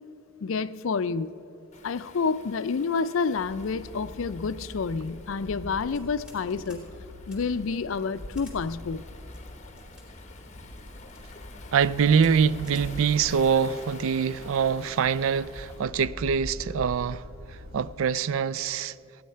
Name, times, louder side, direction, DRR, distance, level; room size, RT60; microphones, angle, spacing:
voice 1, 0.4-1.3 1.8-6.9 7.3-9.1, left 5 dB, 70° left, 0.4 m, -29 dB
Waves surf, 1.7-15.9, left 3 dB, 35° left, 1.0 m, -49 dB
sound 1, 3.3-17.9, left 1 dB, 40° right, 3.3 m, -43 dB
sound 2, 5.9-6.4 6.7-6.8 7.3-7.4 8.3-8.6 9.3-10.0 10.8-11.2 11.7-11.9 12.2-12.3 12.6-12.9, left 3 dB, 5° right, 3.1 m, -52 dB
voice 2, 11.7-17.2 17.5-18.9, right 6 dB, 70° right, 0.3 m, -24 dB
16.0 x 9.4 x 5.6 m
head